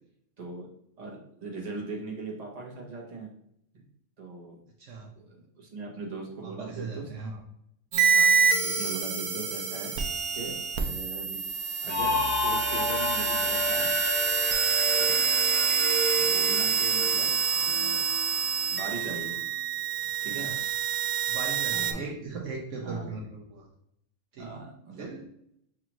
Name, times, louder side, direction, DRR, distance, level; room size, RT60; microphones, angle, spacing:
voice 1, 0.4-0.7 1.0-3.3 4.2-4.6 5.2-7.1 8.1-8.3 8.6-9.9 10.3-11.4 11.8-13.9 15.0-15.3 16.2-18.0 18.7-19.4 20.2-20.5 21.7-22.0 22.8-23.1 24.4-25.1, right 3 dB, 35° right, -1 dB, 0.9 m, -40 dB
voice 2, 4.8-5.1 6.4-7.4 20.4-20.7 21.3-23.7 24.3-24.6 25.0-25.3, right 4 dB, 70° right, 0 dB, 1.0 m, -38 dB
sound 1, 7.9-21.9, right 6 dB, 90° right, 1.1 m, -27 dB
sound 2, 11.9-19.5, left 2 dB, 70° left, 1.3 m, -32 dB
6.0 x 2.4 x 2.9 m, 0.73 s
omnidirectional pair, 1.5 m